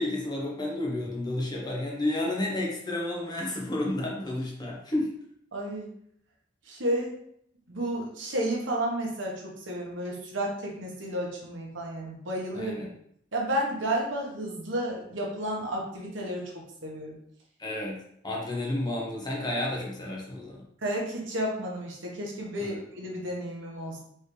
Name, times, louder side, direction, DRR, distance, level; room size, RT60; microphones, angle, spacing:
voice 1, 0.0-5.1 12.5-12.9 17.6-20.6 22.6-22.8, left 1 dB, 20° left, -3 dB, 1.0 m, -31 dB
voice 2, 5.5-5.9 6.7-7.1 7.7-12.9 13.3-17.2 20.8-24.0, right 1 dB, 80° right, -2 dB, 1.2 m, -32 dB
4.5 x 3.3 x 3.2 m, 0.70 s
head